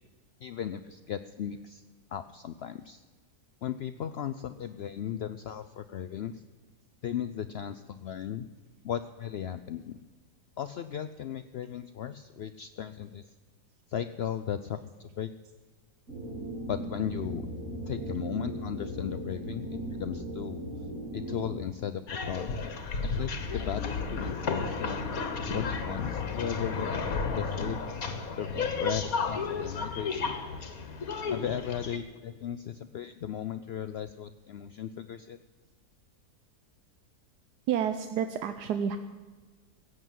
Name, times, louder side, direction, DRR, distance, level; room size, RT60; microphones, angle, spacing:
voice 1, 0.4-1.8 2.1-3.0 3.6-6.4 7.0-8.5 8.8-10.0 10.6-13.2 13.9-15.3 16.7-17.5 17.9-20.6 21.1-22.7 23.0-25.0 25.5-26.9 27.3-27.8 28.4-30.4 31.3-35.4, left 9 dB, 80° left, 11 dB, 0.5 m, -36 dB
sound 1, 16.1-21.6, right 1 dB, 50° right, 4.2 m, -38 dB
sound 2, 22.1-32.0, left 4 dB, 60° left, 1.8 m, -33 dB
voice 2, 37.7-39.0, right 8 dB, 85° right, 9 dB, 1.3 m, -29 dB
16.0 x 7.9 x 9.2 m, 1.3 s
omnidirectional pair, 1.7 m